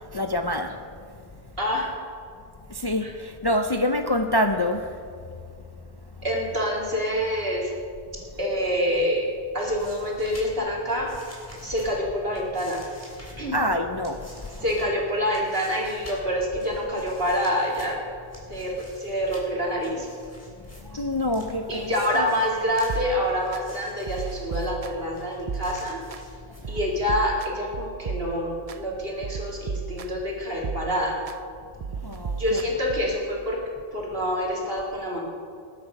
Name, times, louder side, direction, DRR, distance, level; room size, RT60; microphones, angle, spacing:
voice 1, 0.1-0.8 2.7-4.9 13.5-14.5 20.8-22.3 26.7-26.8 32.0-32.6, left 1 dB, 30° left, 6 dB, 0.5 m, -26 dB
voice 2, 1.6-1.9 3.0-3.1 6.2-7.7 8.4-9.3 9.5-11.1 11.6-12.8 13.4-13.6 14.6-18.0 18.5-20.1 21.7-26.0 26.7-31.2 32.4-33.6 33.9-35.2, equal, 65° right, -2 dB, 3.0 m, -26 dB
sound 1, 9.4-27.0, left 1 dB, 15° left, 3.3 m, -48 dB
sound 2, 22.9-23.6 24.1-25.1 25.5-26.2 26.6-28.8 29.2-30.3 30.6-31.4 31.8-33.2, right 6 dB, 45° right, 0.5 m, -35 dB
20.0 x 8.6 x 5.3 m, 2.3 s
omnidirectional pair, 1.1 m